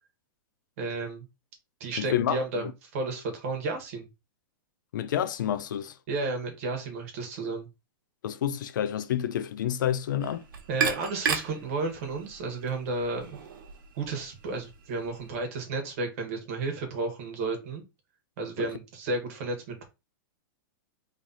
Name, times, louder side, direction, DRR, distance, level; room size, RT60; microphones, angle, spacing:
voice 1, 0.8-1.3 1.8-4.1 6.1-7.7 10.7-13.4 14.0-17.8 18.4-19.8, right 3 dB, 40° right, 1.3 m, -32 dB
voice 2, 2.0-2.7 4.9-5.9 8.2-10.4 18.6-18.7, left 10 dB, 60° left, 0.5 m, -29 dB
sound 1, 10.2-15.3, right 6 dB, 70° right, 1.1 m, -35 dB
3.2 x 2.9 x 3.9 m
supercardioid pair, 175°, 12 cm